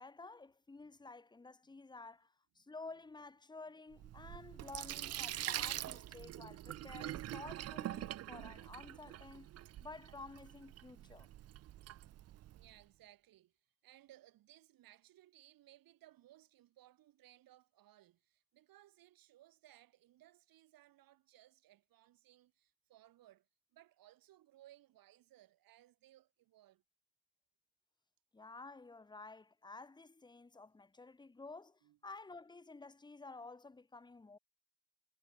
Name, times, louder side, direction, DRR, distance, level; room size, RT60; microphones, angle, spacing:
voice 1, 0.0-9.5 9.8-11.3 28.3-34.4, left 3 dB, 10° left, 1.2 m, -52 dB
Sink (filling or washing), 3.9-12.7, right 13 dB, 45° right, 0.5 m, -45 dB
voice 2, 12.5-26.8 31.8-32.0, right 14 dB, 70° right, 6.0 m, -64 dB
cardioid pair, 120°, 36 cm